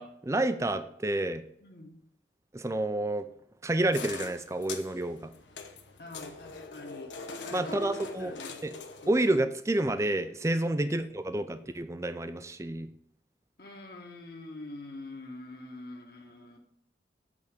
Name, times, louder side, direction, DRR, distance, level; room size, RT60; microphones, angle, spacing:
voice 1, 0.0-1.4 2.5-3.3 3.6-5.3 7.5-8.3 8.6-8.8 9.1-12.9, right 1 dB, 15° right, 10 dB, 0.4 m, -29 dB
voice 2, 1.6-1.9 6.0-7.1 7.4-7.8 8.2-8.6 9.0-9.2 13.6-16.6, left 2 dB, 55° left, 1 dB, 1.6 m, -45 dB
sound 1, 3.9-9.4, left 4 dB, 85° left, 1.0 m, -42 dB
8.3 x 3.5 x 6.5 m, 0.70 s
head